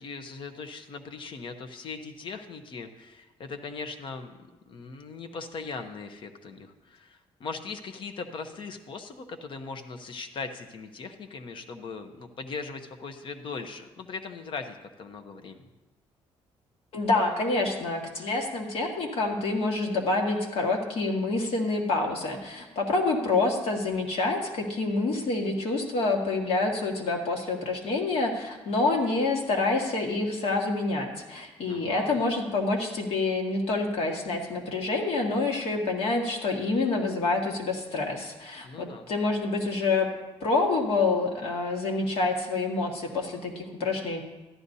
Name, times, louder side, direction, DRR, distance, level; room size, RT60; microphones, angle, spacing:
voice 1, 0.0-15.6 31.7-32.2 38.6-39.1, left 4 dB, 50° left, 8 dB, 0.9 m, -39 dB
voice 2, 16.9-40.1 40.4-44.2, left 3 dB, 65° left, 1 dB, 1.8 m, -27 dB
14.0 x 11.5 x 2.7 m, 1.1 s
cardioid pair, 140°, 11 cm